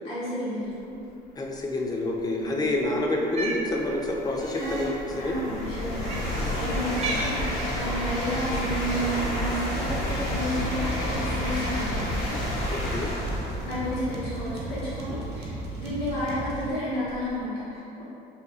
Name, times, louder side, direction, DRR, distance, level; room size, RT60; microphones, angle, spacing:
voice 1, 0.0-1.0 2.3-2.6 4.5-12.4 13.4-18.0, equal, 55° left, -12 dB, 1.5 m, -32 dB
voice 2, 1.4-5.4 12.7-13.1, left 2 dB, 25° left, 0 dB, 0.4 m, -28 dB
sound 1, 1.9-2.0 2.6-17.4, equal, 80° left, 1.2 m, -31 dB
Cat, 3.2-3.7 4.7-4.9 6.0-6.3 6.9-7.4 8.4-8.7, right 3 dB, 45° right, 0.5 m, -33 dB
sound 2, 9.9-16.7, right 2 dB, 80° right, 0.7 m, -36 dB
2.8 x 2.3 x 3.9 m, 2.6 s
cardioid pair, 110°, 17 cm